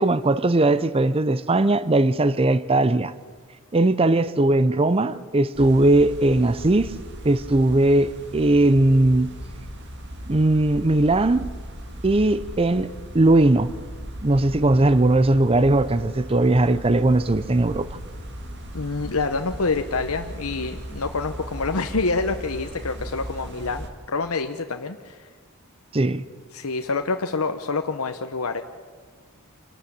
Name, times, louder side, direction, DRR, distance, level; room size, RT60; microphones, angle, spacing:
voice 1, 0.0-3.1 3.7-6.9 7.2-9.3 10.3-11.5 12.0-12.9 13.1-13.7 14.2-17.9 25.9-26.2, right 2 dB, 25° right, 0.6 m, -19 dB
sound 1, 5.5-23.9, equal, 50° right, 2.1 m, -37 dB
voice 2, 18.7-25.2 26.5-28.6, left 3 dB, 75° left, 1.0 m, -27 dB
27.0 x 13.0 x 8.6 m
head